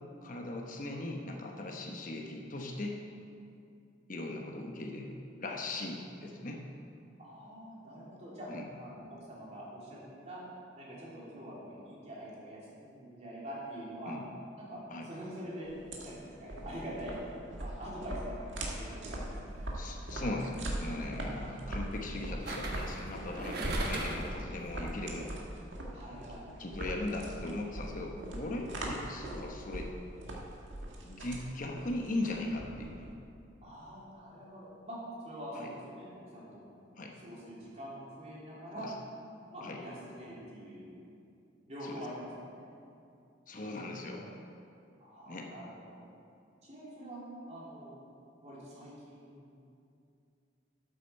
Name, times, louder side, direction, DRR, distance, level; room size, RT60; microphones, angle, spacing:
voice 1, 0.2-3.0 4.1-6.6 8.5-8.6 14.1-14.2 14.9-15.1 19.7-25.3 26.6-29.9 31.0-33.1 35.5-35.7 37.0-37.1 38.7-38.9 39.6-39.8 41.8-42.0 43.5-44.3 45.3-45.5, left 2 dB, 45° left, 1 dB, 0.9 m, -39 dB
voice 2, 7.2-8.5 8.8-10.0 10.2-10.4 10.8-14.2 14.6-15.7 16.0-17.2 17.6-19.3 25.9-26.5 33.6-36.7 37.2-38.9 39.5-40.9 41.6-42.7 45.0-46.0 46.6-48.0 48.4-49.5, equal, 35° right, -7 dB, 3.0 m, -45 dB
sound 1, 15.6-33.1, right 1 dB, 80° right, 1.8 m, -40 dB
sound 2, 19.8-20.1 22.5-24.4 24.8-24.9, right 2 dB, 55° right, 1.2 m, -39 dB
12.5 x 8.4 x 4.5 m, 2.5 s
head